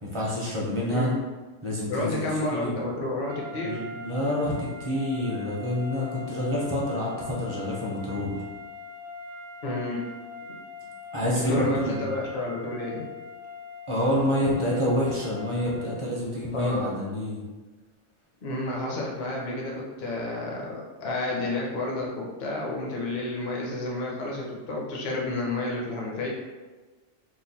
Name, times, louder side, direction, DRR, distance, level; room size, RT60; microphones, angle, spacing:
voice 1, 0.0-1.1 1.6-2.2 2.5-2.7 3.5-8.4 11.1-12.0 13.9-17.4, left 1 dB, 35° right, -5 dB, 0.5 m, -27 dB
voice 2, 1.9-3.8 9.6-10.1 11.5-13.0 16.5-16.9 18.4-26.3, left 2 dB, 45° left, -2 dB, 0.7 m, -30 dB
sound 1, 3.2-16.1, left 5 dB, 70° right, 1.0 m, -41 dB
3.0 x 2.2 x 4.0 m, 1.3 s
omnidirectional pair, 1.3 m